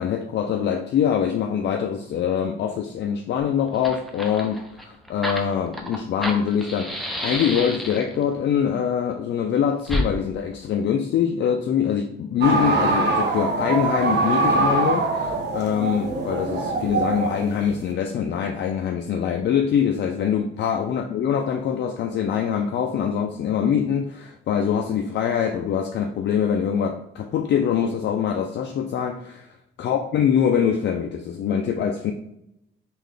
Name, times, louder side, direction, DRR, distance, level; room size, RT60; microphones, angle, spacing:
voice 1, 0.0-32.1, left 8 dB, 60° left, 3 dB, 0.4 m, -24 dB
Fire, 3.4-3.5 3.7-8.2 9.8-10.1, equal, ahead, 0.5 m, -30 dB
sound 1, 12.4-17.9, right 3 dB, 60° right, 0.7 m, -23 dB
3.7 x 2.5 x 3.2 m, 0.78 s
cardioid pair, 90°, 20 cm